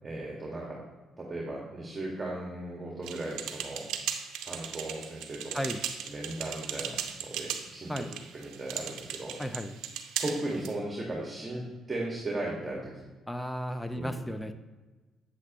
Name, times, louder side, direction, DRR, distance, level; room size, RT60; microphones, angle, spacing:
voice 1, 0.0-0.8 1.2-3.8 4.4-5.6 6.1-8.1 8.3-9.3 10.2-13.0 13.9-14.2, right 2 dB, 20° right, -3 dB, 1.9 m, -36 dB
sound 1, 3.0-10.7, right 9 dB, 90° right, 0.8 m, -37 dB
voice 2, 9.4-9.7 13.3-14.5, equal, 5° left, 9 dB, 0.6 m, -34 dB
8.2 x 7.9 x 3.1 m, 1.2 s
cardioid pair, 90°, 0 cm